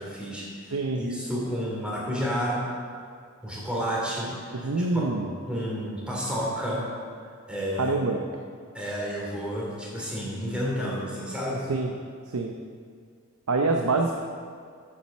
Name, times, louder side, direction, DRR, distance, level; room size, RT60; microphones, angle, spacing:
voice 1, 0.0-2.7 3.4-4.9 5.5-6.9 7.5-7.9 8.7-11.7, equal, 5° right, -5 dB, 2.9 m, -31 dB
voice 2, 4.5-5.3 7.8-8.2 11.7-11.9 12.3-12.5 13.5-14.2, right 3 dB, 85° right, 3 dB, 0.7 m, -25 dB
8.6 x 7.7 x 7.2 m, 2.2 s
head